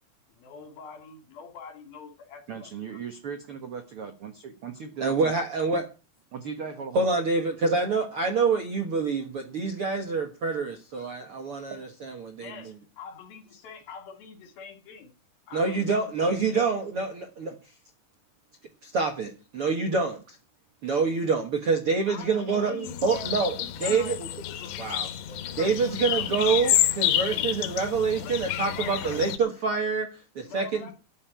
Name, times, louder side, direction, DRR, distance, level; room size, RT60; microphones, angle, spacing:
voice 1, 0.3-3.0 12.4-15.1 15.5-16.7 22.1-24.9 25.2-26.3 27.0-27.5 28.2-28.4 28.7-29.2 30.4-30.9, left 5 dB, 65° left, 5 dB, 4.3 m, -45 dB
voice 2, 2.5-5.3 6.3-7.1, right 6 dB, 75° right, 7 dB, 1.3 m, -38 dB
voice 3, 5.0-5.9 6.9-12.5 15.5-17.5 18.8-20.2 20.8-23.5 23.8-24.3 24.8-25.1 25.6-30.1 30.3-30.9, right 4 dB, 55° right, 4 dB, 1.6 m, -26 dB
sound 1, 22.8-29.4, left 12 dB, 85° left, 3.1 m, -29 dB
13.5 x 6.5 x 9.1 m, 0.33 s
omnidirectional pair, 4.6 m